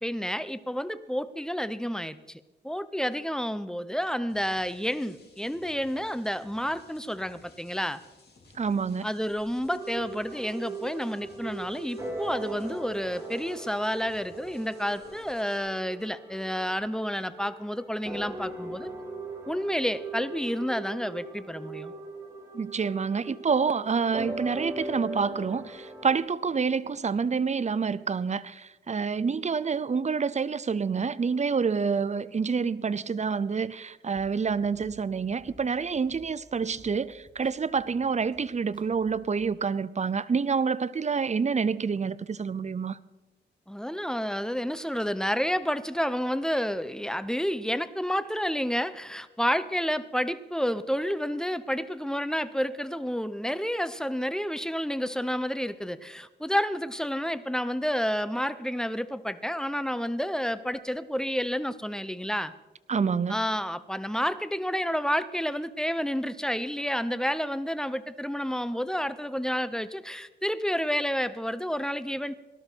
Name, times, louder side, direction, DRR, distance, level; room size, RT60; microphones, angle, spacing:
voice 1, 0.0-8.0 9.0-18.9 19.5-21.9 43.7-62.5 63.3-72.3, equal, 5° left, 0.7 m, -30 dB
sound 1, 4.3-15.6, left 2 dB, 60° left, 4.2 m, -57 dB
voice 2, 8.5-9.0 22.5-43.0 62.9-63.4, right 5 dB, 40° right, 0.6 m, -28 dB
sound 2, 9.7-26.2, right 2 dB, 15° right, 3.8 m, -40 dB
sound 3, 34.2-39.4, left 2 dB, 25° left, 2.4 m, -57 dB
18.5 x 12.5 x 4.6 m
cardioid pair, 75°, 19 cm